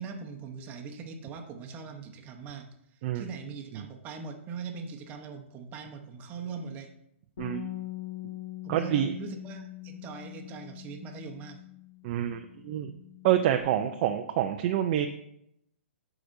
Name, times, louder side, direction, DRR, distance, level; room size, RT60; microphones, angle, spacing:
voice 1, 0.0-2.7 3.1-6.9 8.6-11.6, right 5 dB, 25° right, 3 dB, 1.0 m, -41 dB
Bass guitar, 7.4-13.6, left 13 dB, 60° left, 1.5 m, -43 dB
voice 2, 8.7-9.1 12.0-12.9 13.2-15.1, right 11 dB, 40° right, 5 dB, 0.5 m, -27 dB
13.0 x 4.9 x 2.7 m, 0.77 s
hypercardioid pair, 145°, 7 cm